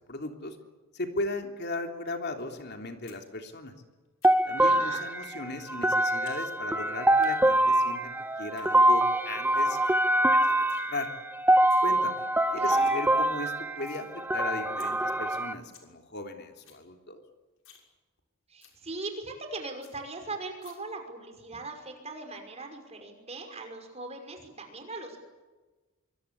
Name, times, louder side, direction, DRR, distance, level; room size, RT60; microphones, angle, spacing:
voice 1, 0.1-0.6 0.9-3.7 4.4-8.1 8.4-9.8 10.1-11.1 11.8-12.3 12.5-17.2, left 2 dB, 50° left, 4 dB, 3.3 m, -37 dB
sound 1, 3.1-3.2 3.5-4.6 5.2-5.4 5.7-6.4 6.7-7.3 8.3-8.7 9.2-9.3 9.5-9.6 9.8-10.1 10.3-10.8 11.5-11.9 12.3-12.4 12.6-12.9 13.3-14.1 14.4-14.5 14.8-14.9 15.3-15.4 15.6-15.9 16.2-16.3 16.5-16.8 17.2-17.3 17.6-17.9 18.2-18.3 18.6-18.8 19.2-19.3 19.5-19.6 19.8-19.9 20.6-20.7, left 9 dB, 80° left, 6.5 m, -55 dB
sound 2, 4.2-15.5, right 1 dB, 10° right, 1.1 m, -25 dB
voice 2, 4.5-5.0 12.6-13.3 18.5-25.2, right 3 dB, 30° right, 4 dB, 5.7 m, -40 dB
26.0 x 25.0 x 8.6 m, 1.2 s
head